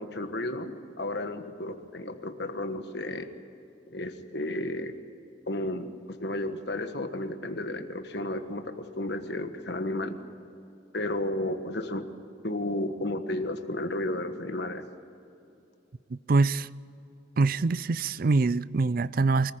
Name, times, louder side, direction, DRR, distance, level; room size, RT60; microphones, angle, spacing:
voice 1, 0.0-3.3 3.9-5.0 5.5-10.2 10.9-12.1 12.4-14.8, left 1 dB, 60° left, 7 dB, 1.4 m, -33 dB
voice 2, 16.1-16.7 17.4-19.5, right 3 dB, 50° right, 19 dB, 0.4 m, -24 dB
24.5 x 15.0 x 8.9 m, 2.8 s
head